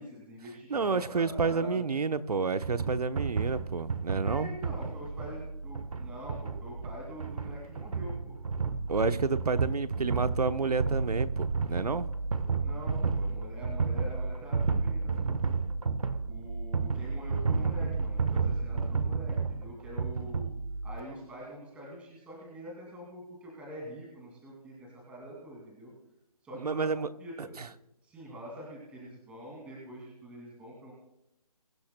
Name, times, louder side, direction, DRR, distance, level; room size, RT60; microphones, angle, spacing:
voice 1, 0.0-1.8 4.2-8.4 12.6-15.3 16.3-20.5 20.8-25.9 26.4-26.9 27.2-27.5 28.0-30.9, equal, 5° right, -4 dB, 2.4 m, -45 dB
voice 2, 0.7-4.5 8.9-12.1 26.5-27.1 27.4-27.7, right 4 dB, 80° right, 12 dB, 0.9 m, -30 dB
sound 1, 2.6-21.0, right 4 dB, 60° right, 1.2 m, -32 dB
22.5 x 11.5 x 2.2 m, 0.86 s
hypercardioid pair, 160°, 20 cm